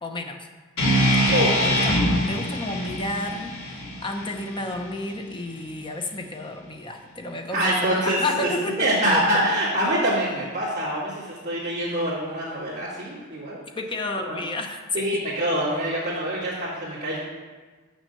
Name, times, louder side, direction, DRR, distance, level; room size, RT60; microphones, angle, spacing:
voice 1, 0.0-0.5 1.1-3.6 4.0-9.2 13.7-15.2, left 2 dB, 25° left, 4 dB, 0.8 m, -31 dB
sound 1, 0.8-4.9, equal, 85° left, 2.7 m, -24 dB
voice 2, 7.5-8.5 8.8-13.6 14.2-14.4 14.9-17.2, right 1 dB, 35° right, -13 dB, 2.3 m, -25 dB
7.0 x 6.2 x 6.7 m, 1.4 s
head